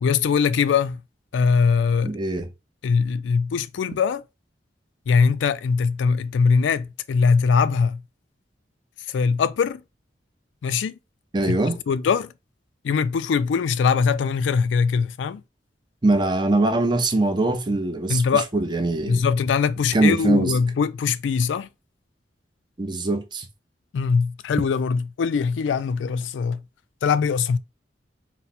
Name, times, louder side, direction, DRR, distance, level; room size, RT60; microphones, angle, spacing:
voice 1, 0.0-1.0 1.3-2.2 2.8-4.2 5.1-8.0 9.1-9.8 10.6-11.0 11.5-11.6 11.9-12.3 12.8-15.4 18.1-18.5 19.1-21.7 23.9-26.6 27.0-27.6, left 5 dB, 90° left, 0.3 m, -21 dB
voice 2, 2.0-2.5 11.3-11.8 16.0-19.2 19.9-20.5 22.8-23.5, right 2 dB, 25° right, 0.6 m, -22 dB
4.1 x 2.1 x 4.1 m
head